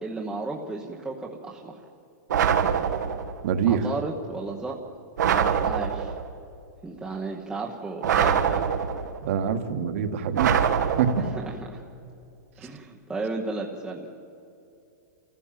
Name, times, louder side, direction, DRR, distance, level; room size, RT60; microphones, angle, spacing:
voice 1, 0.0-1.8 3.7-4.8 5.6-6.1 6.8-8.6 11.2-11.8 12.6-14.1, right 3 dB, 5° right, -2 dB, 1.0 m, -34 dB
sound 1, 2.3-3.4 5.2-6.3 8.0-9.2 10.3-11.5, right 8 dB, 85° right, 1.8 m, -24 dB
voice 2, 3.4-3.8 9.2-10.7 11.0-11.3, right 7 dB, 50° right, 7 dB, 1.6 m, -25 dB
27.0 x 15.0 x 7.6 m, 2.7 s
supercardioid pair, 170°, 9 cm